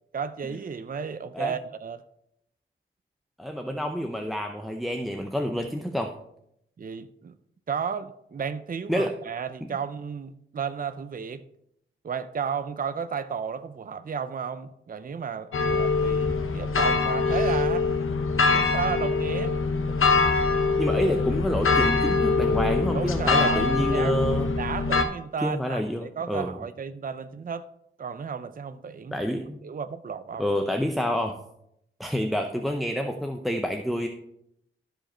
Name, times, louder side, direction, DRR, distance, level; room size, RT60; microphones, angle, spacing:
voice 1, 0.1-2.0 6.8-7.3 7.7-11.4 12.0-17.9 18.5-19.6 22.9-24.2 24.6-27.7 28.0-29.2 29.6-30.4, right 6 dB, 45° right, 0.5 m, -33 dB
voice 2, 3.4-6.1 8.9-9.1 20.8-24.5 25.4-26.6 29.1-29.6 30.4-31.3 32.0-34.1, equal, ahead, 0.6 m, -28 dB
sound 1, 15.5-25.0, left 4 dB, 75° left, 0.8 m, -23 dB
12.5 x 5.1 x 4.3 m
wide cardioid pair, 100°, 21 cm